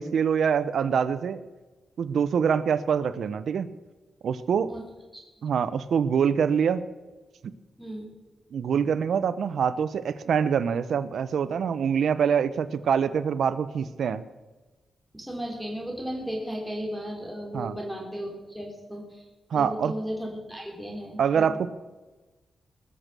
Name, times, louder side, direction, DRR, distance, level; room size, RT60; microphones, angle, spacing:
voice 1, 0.0-1.4 2.0-3.7 4.2-4.7 5.4-6.8 7.4-7.5 8.5-14.2 17.5-17.7 19.5-19.9 21.2-21.7, right 7 dB, 75° right, 14 dB, 0.7 m, -25 dB
voice 2, 7.8-8.1 15.1-19.3 19.5-21.6, equal, ahead, -2 dB, 3.2 m, -35 dB
20.0 x 6.8 x 6.1 m, 1.2 s
cardioid pair, 90°, 0 cm